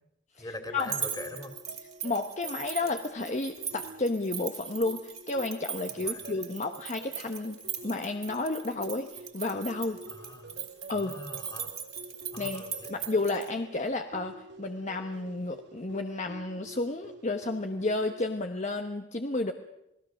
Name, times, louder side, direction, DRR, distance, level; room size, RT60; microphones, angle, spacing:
voice 1, 0.4-1.5 5.9-6.5 10.1-10.6 10.9-11.7 12.3-12.9, left 1 dB, 20° left, 6 dB, 2.9 m, -42 dB
sound 1, 0.7-18.2, right 2 dB, 75° right, 1.4 m, -49 dB
sound 2, 0.8-13.5, right 7 dB, 40° right, 2.4 m, -39 dB
voice 2, 2.0-7.6 7.8-10.0 10.9-11.1 12.4-12.6 12.9-19.5, left 2 dB, 40° left, 6 dB, 1.0 m, -31 dB
28.0 x 18.5 x 6.5 m, 0.86 s
head